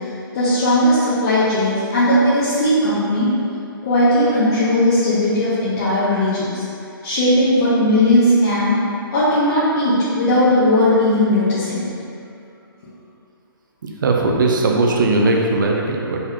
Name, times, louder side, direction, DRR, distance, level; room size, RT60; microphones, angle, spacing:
voice 1, 0.0-3.3 3.8-6.7 7.0-8.8 9.1-11.8, left 1 dB, 40° left, -12 dB, 1.0 m, -17 dB
voice 2, 14.0-16.2, right 2 dB, 55° right, 0 dB, 0.6 m, -18 dB
4.1 x 4.0 x 2.9 m, 2.6 s
figure-of-eight pair, 135°, 13 cm